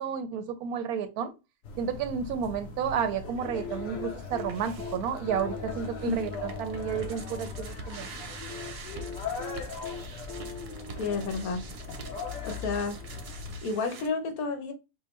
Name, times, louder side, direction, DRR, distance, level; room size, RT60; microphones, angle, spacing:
voice 1, 0.0-1.3 1.8-8.1, right 7 dB, 90° right, 1.1 m, -31 dB
sound 1, 1.6-13.6, left 4 dB, 60° left, 0.9 m, -40 dB
sound 2, 3.4-7.5 8.5-12.1 13.5-13.6, left 5 dB, 25° left, 1.2 m, -42 dB
sound 3, 4.1-14.1, right 5 dB, 55° right, 0.7 m, -46 dB
voice 2, 6.0-6.4 11.0-11.6 12.4-13.0 13.6-14.7, left 3 dB, 80° left, 1.3 m, -31 dB
5.1 x 2.1 x 3.0 m
omnidirectional pair, 1.5 m